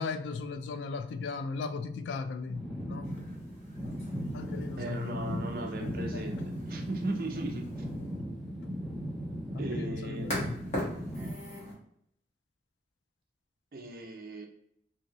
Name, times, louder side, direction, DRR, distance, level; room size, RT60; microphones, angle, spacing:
voice 1, 0.0-3.3 4.3-5.4 5.8-6.2 9.5-10.6, left 4 dB, 90° left, 0.3 m, -37 dB
sound 1, 2.5-11.3, equal, ahead, 0.6 m, -38 dB
sound 2, 3.0-11.7, equal, 40° left, 1.1 m, -43 dB
voice 2, 4.8-6.4 6.7-7.8 9.6-10.4 13.7-14.5, right 2 dB, 50° right, 0.5 m, -37 dB
2.8 x 2.7 x 2.8 m
head